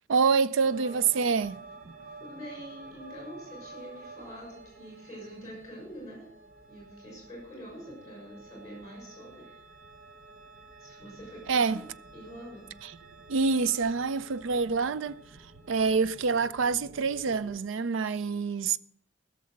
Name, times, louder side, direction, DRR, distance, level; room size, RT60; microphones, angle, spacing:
voice 1, 0.1-1.6 11.5-11.8 12.8-12.9 13.3-15.2 15.7-18.8, right 5 dB, 80° right, 0.4 m, -26 dB
sound 1, 0.6-17.6, right 3 dB, 50° right, 1.0 m, -50 dB
voice 2, 2.2-6.3 6.7-9.6 10.8-11.8 12.1-12.7, equal, 20° left, 6.4 m, -45 dB
15.5 x 6.8 x 6.5 m
head